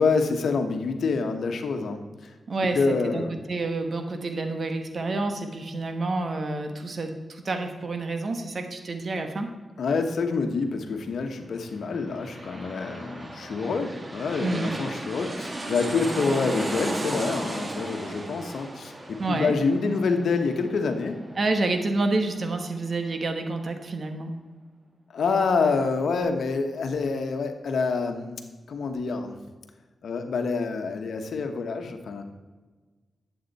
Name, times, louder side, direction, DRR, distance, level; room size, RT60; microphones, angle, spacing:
voice 1, 0.0-2.3 2.7-3.3 9.8-21.2 25.1-28.4 28.7-29.4 30.0-32.2, left 4 dB, 75° left, 6 dB, 1.1 m, -27 dB
voice 2, 2.5-3.2 3.5-9.5 14.4-14.7 19.2-19.6 21.4-24.4, right 2 dB, 55° right, 6 dB, 1.4 m, -28 dB
sound 1, 11.8-23.1 23.5-23.6, right 1 dB, 30° right, 1.7 m, -36 dB
11.5 x 8.0 x 4.2 m, 1.3 s
cardioid pair, 65°, 0 cm